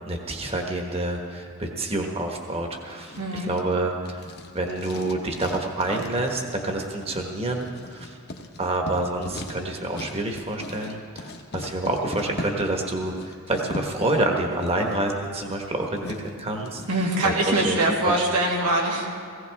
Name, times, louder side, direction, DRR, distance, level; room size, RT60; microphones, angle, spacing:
voice 1, 0.1-3.2 3.5-4.2 4.5-8.1 8.6-13.1 13.5-16.8 17.2-17.8 18.0-18.2, right 2 dB, 25° right, 2 dB, 1.4 m, -27 dB
Writing, 2.9-17.2, left 1 dB, 50° left, 1.1 m, -40 dB
voice 2, 3.2-3.5 16.9-19.1, right 1 dB, 85° right, -1 dB, 2.4 m, -23 dB
17.5 x 16.0 x 3.6 m, 2.3 s
head